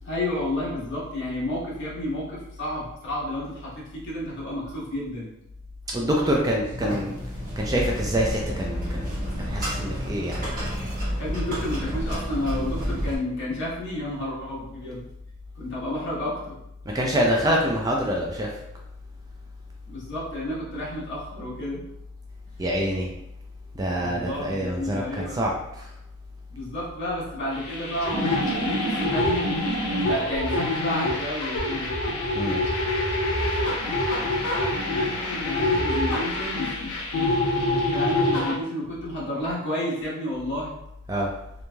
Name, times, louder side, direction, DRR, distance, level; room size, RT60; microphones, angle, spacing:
voice 1, 0.0-5.3 11.2-15.0 15.6-16.5 19.9-21.8 24.0-25.5 26.5-29.5 29.9-31.9 34.9-40.7, left 1 dB, 55° left, -6 dB, 1.1 m, -31 dB
voice 2, 5.9-7.1 7.6-9.1 9.4-10.4 16.9-18.5 22.6-23.1 23.8-25.5 32.4-32.6 41.1-41.3, equal, 15° right, -1 dB, 0.3 m, -25 dB
sound 1, 6.6-13.2, equal, 40° right, 1.2 m, -30 dB
sound 2, 27.5-38.5, left 1 dB, 90° left, 0.7 m, -26 dB
3.0 x 2.6 x 2.2 m, 0.82 s
head